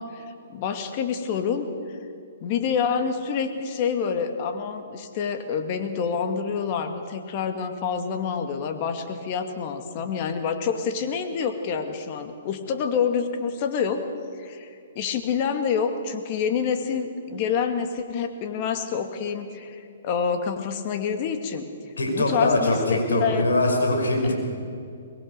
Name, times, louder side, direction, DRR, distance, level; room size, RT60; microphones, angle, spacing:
voice 1, 0.0-2.0 2.4-14.1 14.4-14.7 15.0-21.6 22.1-23.5, left 6 dB, 40° left, 7 dB, 2.3 m, -27 dB
voice 2, 22.0-24.3, left 2 dB, 85° left, 2 dB, 5.5 m, -22 dB
23.0 x 21.0 x 6.8 m, 2.5 s
hypercardioid pair, 130°, 0 cm